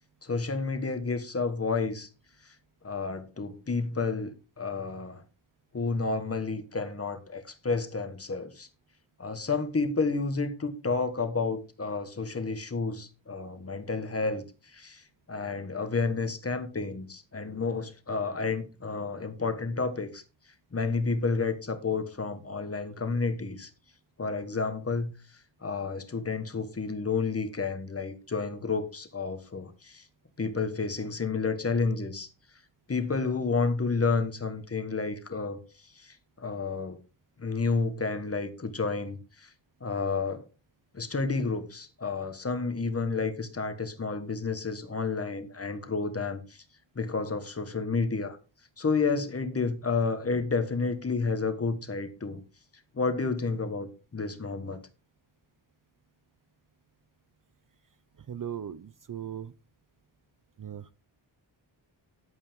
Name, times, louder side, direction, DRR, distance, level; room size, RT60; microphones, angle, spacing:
voice 1, 0.2-2.1 2.4-2.5 2.8-5.2 5.7-8.7 9.2-20.2 20.7-23.7 24.2-25.1 25.6-30.0 30.4-32.3 32.9-37.0 37.4-39.5 39.8-40.5 40.9-46.6 46.9-48.4 48.8-52.4 52.9-54.8, left 4 dB, 30° left, 1.4 m, -30 dB
voice 2, 58.2-59.5 60.6-60.9, right 9 dB, 45° right, 0.5 m, -38 dB
11.0 x 8.6 x 3.6 m
wide cardioid pair, 180°, 46 cm